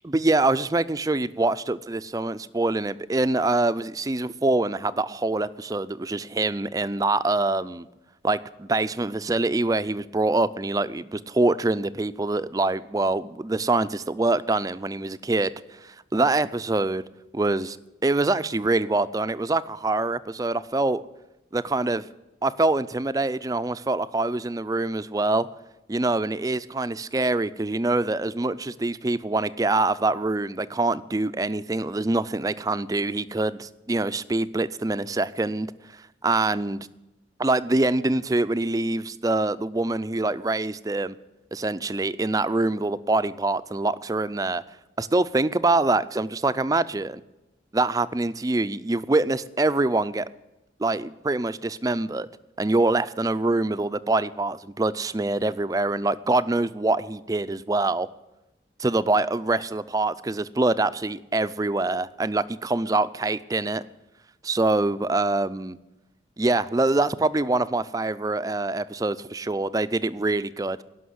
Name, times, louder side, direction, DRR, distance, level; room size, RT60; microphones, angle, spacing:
voice 1, 0.0-7.9 8.2-15.5 15.8-17.0 17.3-17.8 18.0-21.0 21.5-22.1 22.4-25.5 25.9-35.7 36.2-36.8 37.4-41.2 41.5-44.6 45.0-47.2 47.7-50.3 50.8-52.3 52.6-58.1 58.8-63.8 64.4-65.8 66.4-70.8, right 2 dB, 20° right, 14 dB, 0.4 m, -25 dB
17.5 x 6.1 x 9.4 m, 0.99 s
head